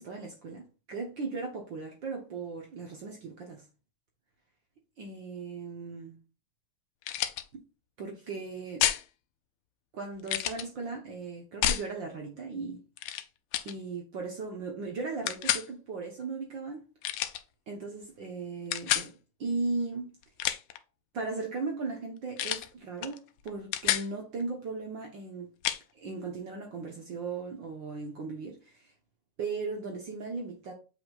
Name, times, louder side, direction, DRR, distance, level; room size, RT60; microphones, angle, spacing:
voice 1, 0.0-3.7 5.0-6.2 7.5-7.6 8.0-8.9 9.9-12.8 13.6-16.9 17.7-19.1 19.4-20.2 21.1-25.5 25.9-28.9 29.4-30.7, right 4 dB, 65° right, 1.1 m, -37 dB
sound 1, 7.0-7.4 8.8-9.0 10.3-10.6 11.6-11.9 13.0-13.2 13.5-13.7 15.3-15.7 17.0-17.4 18.7-19.1 20.2-20.8 22.4-22.7 23.0-23.2 23.5-24.1 25.6-25.8, left 12 dB, 80° left, 1.4 m, -29 dB
7.7 x 5.3 x 2.4 m
omnidirectional pair, 3.4 m